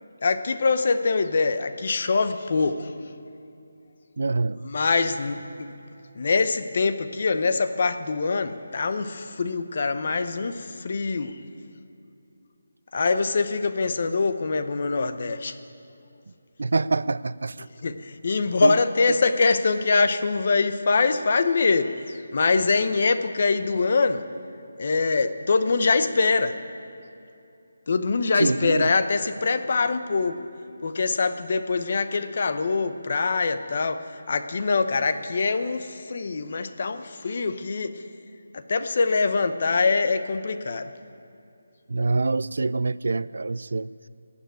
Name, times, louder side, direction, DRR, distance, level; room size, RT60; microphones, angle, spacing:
voice 1, 0.2-2.9 4.6-5.4 6.2-11.3 12.9-15.6 17.8-24.3 24.8-26.5 27.9-30.4 30.8-34.0 34.3-37.9 38.5-40.9, left 4 dB, 40° left, 10 dB, 0.7 m, -24 dB
voice 2, 4.2-4.7 16.6-17.7 18.6-18.8 28.3-28.9 41.9-43.9, right 3 dB, 65° right, 19 dB, 0.3 m, -25 dB
18.5 x 7.1 x 9.2 m, 2.7 s
figure-of-eight pair, 175°, 0 cm